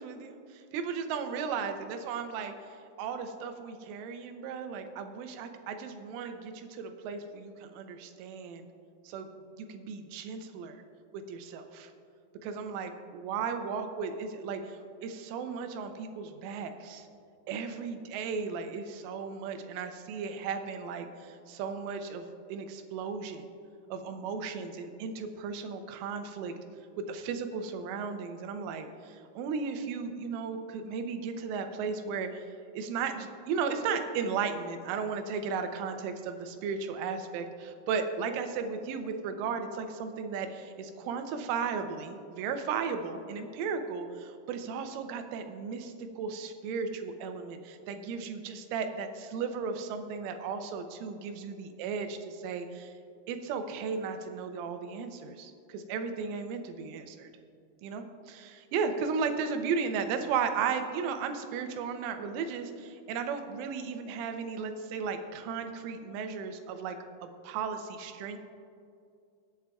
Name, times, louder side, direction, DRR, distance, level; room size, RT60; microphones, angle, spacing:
voice 1, 0.0-2.5 3.0-8.7 9.0-9.3 9.6-10.8 11.1-11.9 12.4-17.1 17.5-23.4 23.9-26.5 27.0-32.4 32.7-52.9 53.3-57.3 57.8-67.0 67.2-68.4, right 5 dB, 85° right, 7 dB, 3.3 m, -35 dB
24.0 x 8.3 x 2.4 m, 2.5 s
omnidirectional pair, 5.6 m